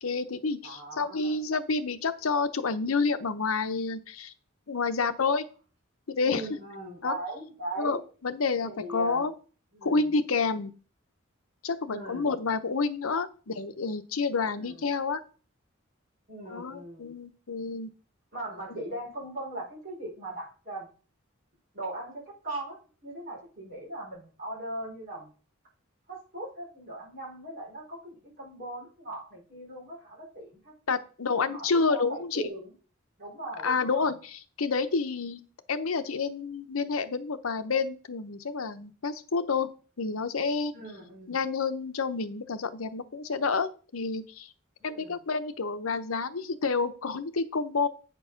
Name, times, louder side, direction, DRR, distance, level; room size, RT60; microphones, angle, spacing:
voice 1, 0.0-4.3 4.7-5.4 6.1-6.4 7.0-7.2 7.8-9.3 9.8-10.7 11.6-15.2 16.5-17.9 18.7-18.8 30.9-32.4 33.6-35.4 35.7-39.7 40.0-40.7 41.3-44.5 44.8-47.9, left 4 dB, 85° left, 9 dB, 0.8 m, -29 dB
voice 2, 0.6-1.4 6.2-8.0 8.6-9.3 9.7-10.1 11.9-12.3 14.6-14.8 16.3-17.0 18.3-20.9 21.7-22.8 23.0-25.3 26.1-30.7 31.4-32.7 33.2-34.1 40.7-41.4 44.8-45.2, right 1 dB, 45° right, -3 dB, 5.0 m, -39 dB
8.8 x 4.6 x 5.7 m, 0.38 s
head